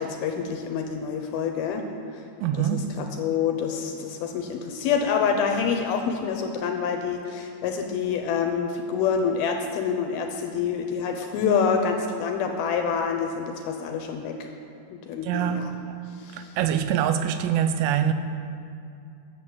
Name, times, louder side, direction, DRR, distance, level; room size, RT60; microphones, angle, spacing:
voice 1, 0.0-1.8 2.1-2.2 2.6-14.5 14.9-15.7 16.2-16.6, left 6 dB, 75° left, 2.4 m, -27 dB
voice 2, 2.4-3.0 15.2-16.0 16.3-18.1, right 9 dB, 85° right, 2.8 m, -25 dB
11.5 x 7.5 x 7.8 m
omnidirectional pair, 5.0 m